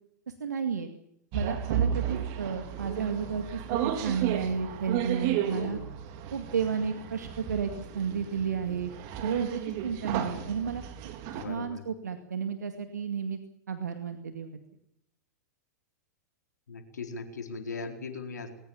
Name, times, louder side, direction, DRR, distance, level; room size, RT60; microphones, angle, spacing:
voice 1, 0.4-0.9 1.3-5.8 6.3-8.9 9.2-10.8 11.3-13.4 13.7-14.5, right 6 dB, 75° right, 7 dB, 2.3 m, -32 dB
sound 1, 1.3-11.4, right 10 dB, 45° right, 3.7 m, -33 dB
voice 2, 5.5-5.9 10.1-10.5 11.4-11.8 16.7-18.5, left 4 dB, 70° left, 5 dB, 4.4 m, -39 dB
21.5 x 19.5 x 7.3 m, 0.79 s
figure-of-eight pair, 100°, 9 cm